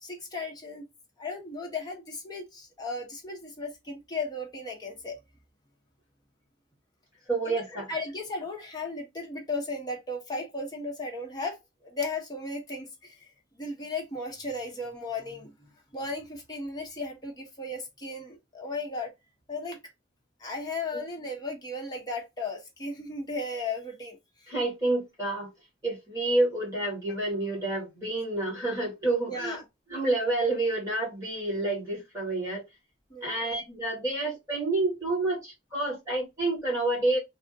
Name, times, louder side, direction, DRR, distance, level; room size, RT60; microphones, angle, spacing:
voice 1, 0.0-0.9 1.2-5.2 7.4-7.6 7.9-13.3 13.6-19.1 19.5-19.8 20.4-24.2 29.2-29.6 33.1-33.4, left 2 dB, 20° left, 0.9 m, -35 dB
voice 2, 7.3-7.8 24.5-25.5 25.8-29.6 29.9-32.6 33.2-37.2, right 2 dB, 20° right, 1.8 m, -28 dB
3.3 x 2.1 x 2.6 m
head